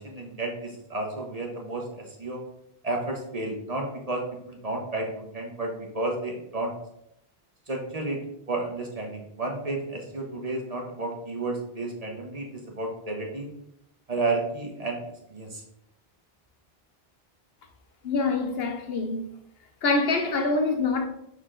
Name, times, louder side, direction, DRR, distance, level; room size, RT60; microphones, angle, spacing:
voice 1, 0.0-2.4 2.8-6.7 7.7-8.2 8.5-13.5 14.1-15.0 15.3-15.6, right 2 dB, 40° right, 1.1 m, -32 dB
voice 2, 18.0-19.3 19.8-21.1, left 3 dB, 75° left, 1.0 m, -25 dB
6.6 x 4.0 x 3.8 m
omnidirectional pair, 1.0 m